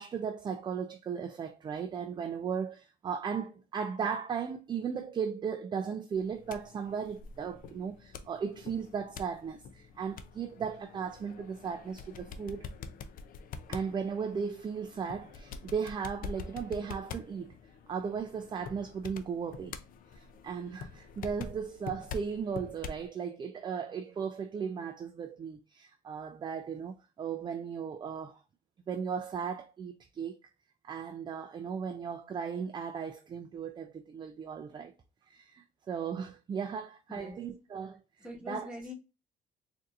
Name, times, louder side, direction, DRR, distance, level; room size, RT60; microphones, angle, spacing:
voice 1, 0.0-12.7 13.7-17.6 17.9-19.7 20.1-28.4 28.9-30.4 30.8-34.9 35.3-38.8, right 6 dB, 25° right, 0.3 m, -36 dB
sound 1, 6.1-23.1, left 5 dB, 55° left, 0.5 m, -46 dB
voice 2, 38.2-38.9, left 2 dB, 5° right, 1.3 m, -43 dB
3.9 x 2.6 x 2.4 m
cardioid pair, 110°, 17 cm